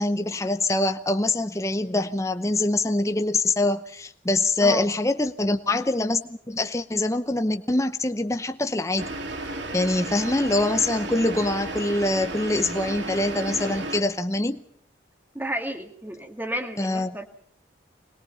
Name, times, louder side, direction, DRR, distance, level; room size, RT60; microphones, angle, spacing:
voice 1, 0.0-9.1 9.7-14.6 16.8-17.2, left 2 dB, 15° left, 8 dB, 0.8 m, -24 dB
sound 1, 9.0-14.0, right 2 dB, 70° right, 2.7 m, -33 dB
voice 2, 15.3-17.3, right 1 dB, 10° right, 5 dB, 2.0 m, -32 dB
22.0 x 21.5 x 5.5 m, 0.64 s
head